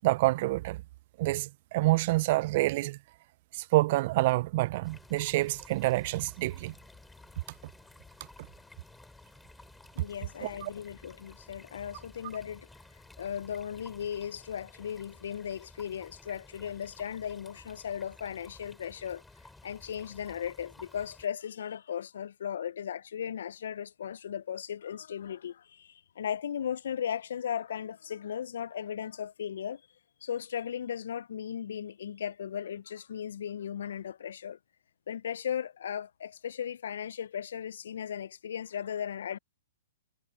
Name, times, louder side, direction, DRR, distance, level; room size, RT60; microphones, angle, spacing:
voice 1, 0.0-0.8 1.2-3.0 3.6-6.7 10.4-10.7, right 19 dB, 45° right, 0.5 m, -27 dB
sound 1, 4.8-21.3, left 2 dB, 5° left, 2.9 m, -54 dB
voice 2, 10.0-12.7 13.2-19.2 19.6-29.8 30.2-34.6 35.1-39.4, left 8 dB, 65° left, 0.5 m, -37 dB
hypercardioid pair, 120°, 0 cm